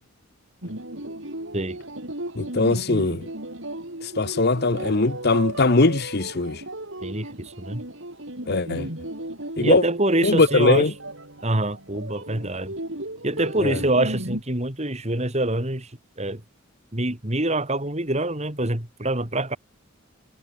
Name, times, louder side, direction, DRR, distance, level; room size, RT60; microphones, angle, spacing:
sound 1, 0.6-14.4, right 1 dB, 65° right, 5.6 m, -35 dB
voice 1, 2.4-3.3 4.2-6.6 8.5-8.9 9.6-9.8 10.2-10.9 13.6-13.8, left 3 dB, 50° left, 1.0 m, -20 dB
voice 2, 7.0-7.8 9.6-10.9 11.4-12.7 13.2-15.9 16.2-16.4 16.9-19.6, right 1 dB, 30° right, 3.2 m, -25 dB
head